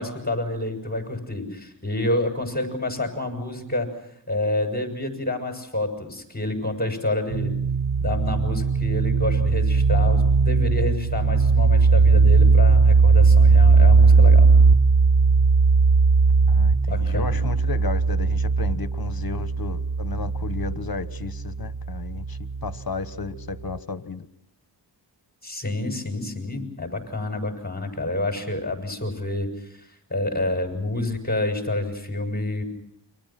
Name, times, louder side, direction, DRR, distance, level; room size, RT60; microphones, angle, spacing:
voice 1, 0.0-3.9 4.3-7.5 8.0-14.5 16.9-17.5 25.4-32.6, left 2 dB, 20° left, 7.0 m, -28 dB
sound 1, 7.3-22.7, right 4 dB, 45° right, 1.0 m, -18 dB
voice 2, 16.5-24.3, left 5 dB, 55° left, 1.3 m, -33 dB
29.5 x 24.5 x 6.0 m
cardioid pair, 55°, 43 cm